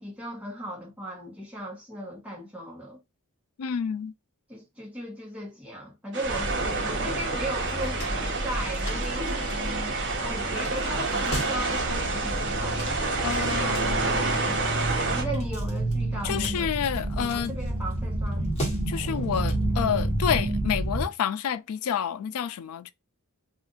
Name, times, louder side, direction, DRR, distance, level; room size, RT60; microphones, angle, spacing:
voice 1, 0.0-3.0 4.5-9.5 10.2-12.8 15.1-16.7 17.1-18.5, right 1 dB, 5° right, 1.1 m, -37 dB
voice 2, 3.6-4.1 13.2-14.0 16.2-17.6 18.9-22.9, left 8 dB, 75° left, 0.3 m, -29 dB
sound 1, 6.1-15.2, right 3 dB, 55° right, 0.9 m, -29 dB
sound 2, 6.2-21.1, right 1 dB, 25° left, 1.3 m, -30 dB
2.5 x 2.4 x 3.7 m
head